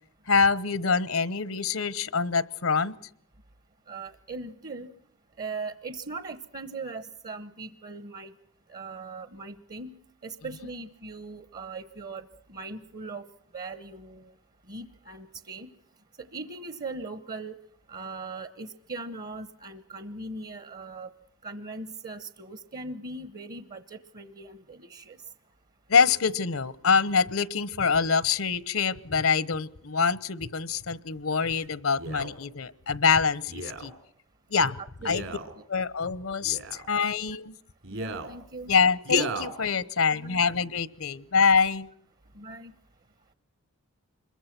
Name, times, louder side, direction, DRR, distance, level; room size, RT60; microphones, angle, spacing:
voice 1, 0.3-2.9 25.9-33.9 34.5-34.8 35.0-35.2 35.7-37.6 38.7-41.9, left 5 dB, 75° left, 19 dB, 0.9 m, -25 dB
voice 2, 3.9-4.9 5.4-8.3 8.7-9.9 10.2-13.3 13.5-14.3 14.7-15.7 16.2-17.6 17.9-21.1 21.4-25.2 34.8-35.1 35.6-35.7 37.9-38.7 40.1-40.4 42.3-42.7, right 3 dB, 45° right, 13 dB, 1.0 m, -40 dB
Male speech man speaking, 32.0-32.3 33.5-33.9 35.0-35.5 36.4-36.9 37.8-38.3 39.0-39.5 40.2-40.3, right 2 dB, 65° right, 3.3 m, -34 dB
26.0 x 22.0 x 6.0 m, 0.65 s
head